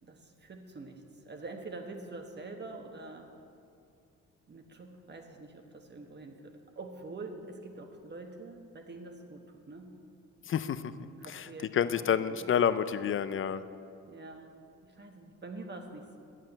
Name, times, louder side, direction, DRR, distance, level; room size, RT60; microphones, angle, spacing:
voice 1, 0.0-3.4 4.5-10.0 11.2-12.5 14.1-16.2, right 3 dB, 35° right, 4 dB, 1.3 m, -46 dB
voice 2, 10.5-10.9 11.7-13.6, left 8 dB, 45° left, 13 dB, 0.5 m, -28 dB
9.0 x 7.6 x 7.8 m, 2.5 s
cardioid pair, 90°, 30 cm